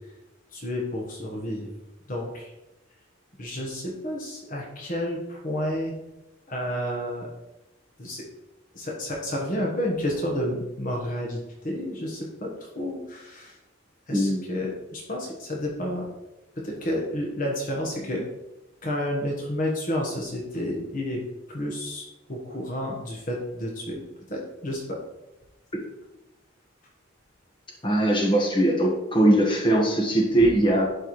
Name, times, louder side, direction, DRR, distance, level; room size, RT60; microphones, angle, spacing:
voice 1, 0.5-1.7 2.1-2.5 3.4-5.9 6.5-7.3 8.0-8.2 8.7-12.5 12.7-13.6 14.1-16.1 16.6-18.2 18.8-21.2 21.5-24.0 24.3-25.0, left 1 dB, 45° left, -1 dB, 1.2 m, -30 dB
voice 2, 14.1-14.4 27.8-30.9, right 1 dB, 25° left, -1 dB, 1.4 m, -21 dB
11.0 x 4.5 x 3.1 m, 0.96 s
head